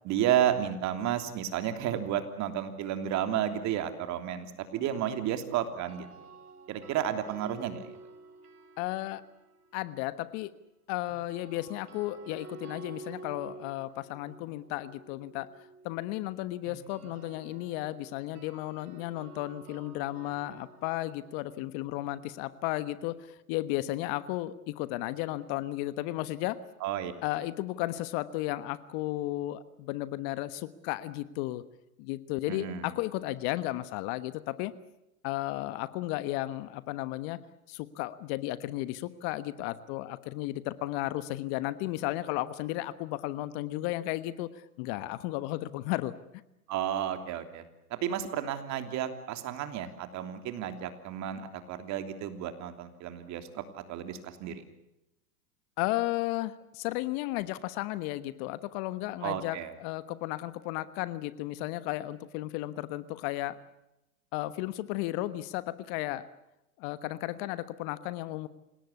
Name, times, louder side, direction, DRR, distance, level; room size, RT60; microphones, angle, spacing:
voice 1, 0.0-6.2 6.7-8.0 26.8-27.1 32.5-33.0 46.7-47.6 48.0-54.6 59.2-59.7, right 10 dB, 40° right, 8 dB, 3.2 m, -32 dB
sound 1, 5.7-9.8 11.1-23.0, right 4 dB, 85° right, 4.7 m, -51 dB
voice 2, 8.8-9.2 9.7-10.5 10.9-15.5 15.8-23.2 23.5-26.6 27.2-31.6 32.0-34.7 35.2-37.4 37.7-44.5 44.8-46.1 55.8-63.6 64.3-66.3 66.8-68.5, left 16 dB, 45° left, 15 dB, 1.3 m, -34 dB
27.5 x 18.0 x 8.4 m, 0.88 s
hypercardioid pair, 115°, 44 cm